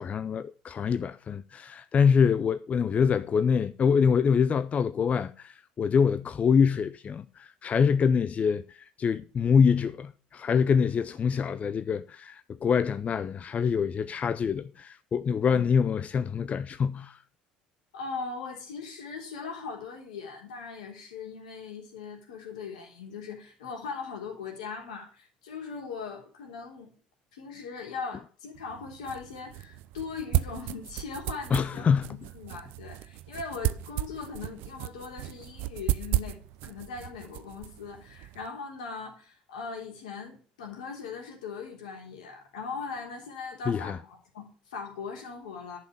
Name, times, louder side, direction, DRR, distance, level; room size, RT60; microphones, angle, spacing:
voice 1, 0.0-17.2 31.5-32.1 43.7-44.0, left 6 dB, 35° left, 0.6 m, -25 dB
voice 2, 17.9-26.9 27.3-45.8, left 5 dB, 80° left, 3.4 m, -40 dB
sound 1, 28.5-38.5, right 15 dB, 65° right, 0.6 m, -34 dB
10.5 x 5.8 x 7.2 m
hypercardioid pair, 65°, 4 cm